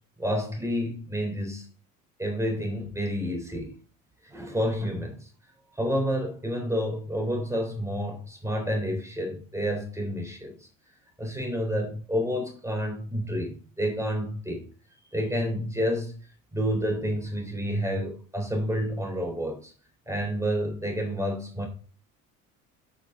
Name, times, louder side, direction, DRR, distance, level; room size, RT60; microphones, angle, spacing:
voice 1, 0.2-1.7 2.2-3.7 4.2-5.3 5.7-10.6 11.2-14.7 15.1-16.2 16.5-19.7 20.1-21.7, equal, 5° right, 3.5 m, -29 dB
7.7 x 6.5 x 3.9 m
hypercardioid pair, 65°, 40 cm